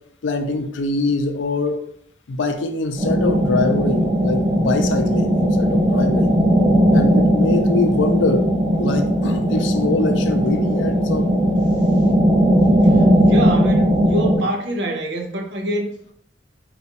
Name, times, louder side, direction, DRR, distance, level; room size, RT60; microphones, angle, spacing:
voice 1, 0.2-1.8 2.3-6.4 6.9-8.5 8.8-11.3, left 3 dB, 75° left, 7 dB, 0.4 m, -23 dB
sound 1, 3.0-14.4, equal, 20° right, 0.8 m, -17 dB
voice 2, 12.8-16.1, right 1 dB, 65° right, 2 dB, 0.6 m, -26 dB
3.7 x 2.3 x 2.9 m, 0.66 s
head